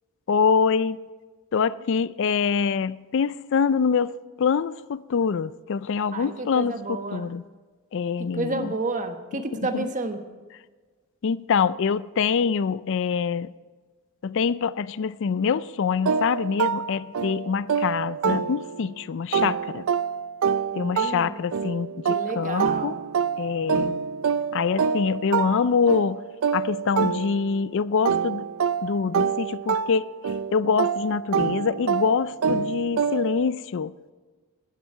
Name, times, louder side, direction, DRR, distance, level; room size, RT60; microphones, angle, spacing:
voice 1, 0.3-1.0 1.5-4.1 4.4-7.4 7.9-8.7 9.7-9.8 11.2-13.5 14.2-19.8 20.7-23.0 23.4-23.9 24.5-26.2 26.5-28.5 28.8-30.0 30.5-33.9, left 6 dB, 60° left, 0.4 m, -25 dB
voice 2, 6.1-7.3 8.2-10.2 20.7-21.4 22.1-23.0, right 3 dB, 35° right, 1.2 m, -31 dB
sound 1, 16.1-18.9 19.3-27.7 28.1-33.5, right 6 dB, 70° right, 0.4 m, -27 dB
16.0 x 11.0 x 4.6 m
head